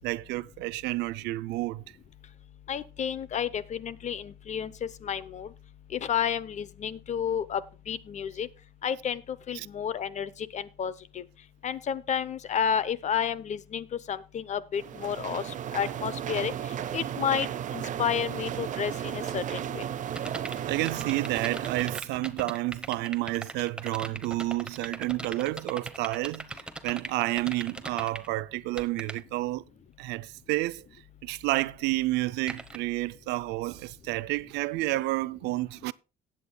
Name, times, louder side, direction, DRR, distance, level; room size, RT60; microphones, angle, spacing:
voice 1, 0.0-1.8 9.5-9.7 20.7-26.5 26.8-29.6 30.0-30.9 31.2-35.9, right 19 dB, 90° right, 0.5 m, -30 dB
voice 2, 2.7-4.7 5.0-5.5 5.9-7.6 7.9-8.5 8.8-9.2 9.5-11.2 11.6-15.4 15.7-16.5 16.9-17.5 17.7-19.4 19.7-19.8, left 8 dB, 45° left, 0.8 m, -31 dB
sound 1, 14.7-22.0, right 10 dB, 50° right, 0.7 m, -34 dB
sound 2, 20.1-28.3 28.5-29.2 32.5-32.8, right 2 dB, 5° right, 1.0 m, -39 dB
18.0 x 8.5 x 2.2 m
cardioid pair, 110°, 17 cm